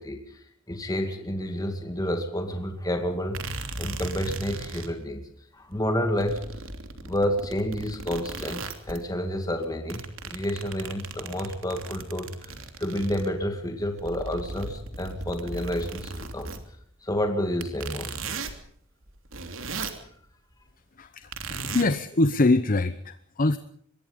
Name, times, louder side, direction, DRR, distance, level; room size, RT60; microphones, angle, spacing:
voice 1, 0.0-3.4 3.8-5.2 5.5-6.4 7.0-16.5 17.0-18.2, equal, 20° left, 5 dB, 2.2 m, -30 dB
sound 1, 2.4-2.5 3.3-4.9 5.7-5.8 6.2-9.1 9.5-13.3 13.8-16.6 17.6-18.6 19.0-20.0 21.3-21.8, right 3 dB, 75° right, 3.1 m, -37 dB
voice 2, 21.0-23.6, left 2 dB, 45° left, 12 dB, 0.9 m, -24 dB
25.0 x 21.5 x 5.3 m, 0.63 s
head